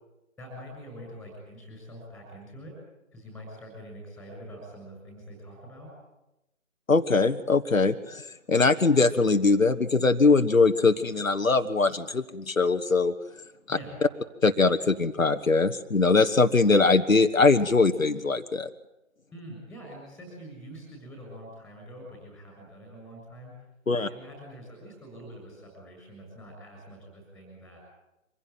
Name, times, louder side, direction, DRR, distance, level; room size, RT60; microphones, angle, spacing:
voice 1, 0.4-2.7 3.1-5.9 13.7-14.0 19.3-23.5 24.0-27.8, equal, ahead, 1 dB, 6.8 m, -45 dB
voice 2, 6.9-13.1 13.7-13.8 14.4-18.7 23.9-24.1, left 3 dB, 85° left, 7 dB, 1.4 m, -22 dB
24.5 x 16.0 x 9.3 m, 0.93 s
figure-of-eight pair, 150°, 39 cm